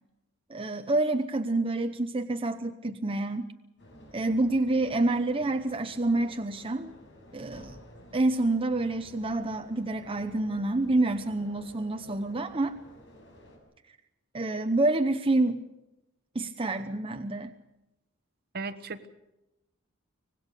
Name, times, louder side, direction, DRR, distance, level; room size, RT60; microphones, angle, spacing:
voice 1, 0.5-3.5 4.1-6.9 7.3-7.8 8.1-12.7 14.3-15.6 16.3-17.5, right 2 dB, 25° right, 7 dB, 0.8 m, -28 dB
sound 1, 3.8-13.6, left 1 dB, 60° left, 7.1 m, -53 dB
voice 2, 18.5-19.1, right 4 dB, 50° right, 10 dB, 1.3 m, -36 dB
25.5 x 19.0 x 6.8 m, 0.94 s
head